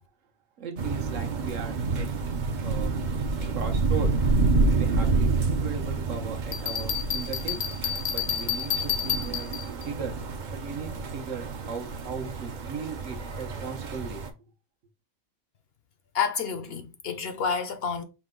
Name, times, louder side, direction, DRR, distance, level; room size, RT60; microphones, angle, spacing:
voice 1, 0.6-2.1 2.5-2.9 3.5-4.1 4.7-7.6 8.1-9.6 9.8-14.2, right 5 dB, 80° right, 1.2 m, -37 dB
sound 1, 0.8-14.3, right 3 dB, 50° right, 0.6 m, -28 dB
Bell, 6.5-9.9, left 9 dB, 85° left, 1.1 m, -30 dB
voice 2, 16.1-18.0, left 6 dB, 60° left, 0.7 m, -29 dB
5.2 x 2.2 x 3.7 m
omnidirectional pair, 1.3 m